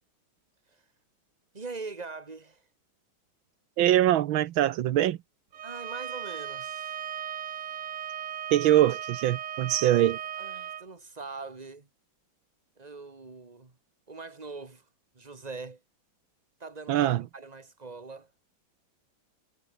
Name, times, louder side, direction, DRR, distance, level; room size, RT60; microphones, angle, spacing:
voice 1, 1.5-2.7 5.6-7.0 9.8-9.9 10.4-11.9 12.8-13.8 14.1-14.9 15.1-15.8 16.6-18.3, right 4 dB, 20° right, 2.3 m, -42 dB
voice 2, 3.8-5.2 8.5-10.2 16.9-17.2, right 13 dB, 80° right, 1.6 m, -23 dB
Bowed string instrument, 5.5-10.8, right 9 dB, 50° right, 0.9 m, -37 dB
omnidirectional pair, 2.2 m